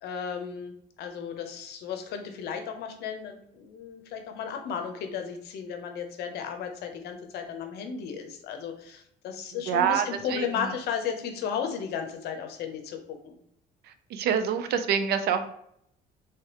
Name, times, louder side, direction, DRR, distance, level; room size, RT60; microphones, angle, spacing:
voice 1, 0.0-13.4, left 7 dB, 75° left, 5 dB, 0.8 m, -34 dB
voice 2, 9.7-10.0 10.3-10.4 14.1-15.5, right 8 dB, 75° right, 10 dB, 0.5 m, -25 dB
3.4 x 3.3 x 2.9 m, 0.72 s
cardioid pair, 110°, 17 cm